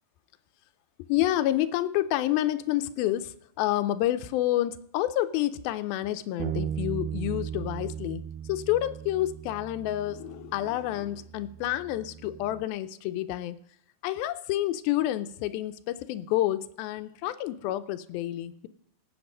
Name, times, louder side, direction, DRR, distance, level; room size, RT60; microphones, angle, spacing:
voice 1, 1.1-8.2 8.5-13.6 14.0-18.7, left 14 dB, 85° left, 12 dB, 2.5 m, -29 dB
Bass guitar, 6.4-12.7, right 10 dB, 80° right, 2.0 m, -37 dB
17.5 x 8.0 x 5.4 m, 0.70 s
omnidirectional pair, 4.2 m